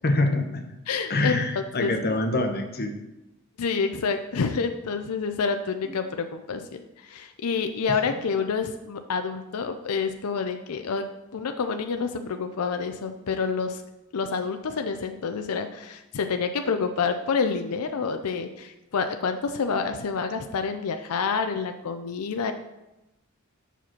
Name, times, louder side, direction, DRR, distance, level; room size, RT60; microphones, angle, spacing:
voice 1, 0.0-0.7 1.1-2.9 5.8-5.9, left 2 dB, 45° left, 5 dB, 0.9 m, -25 dB
voice 2, 0.9-2.1 3.6-11.0 11.3-13.8 14.1-22.5, left 5 dB, 85° left, 7 dB, 0.5 m, -28 dB
6.7 x 4.9 x 5.9 m, 0.95 s
head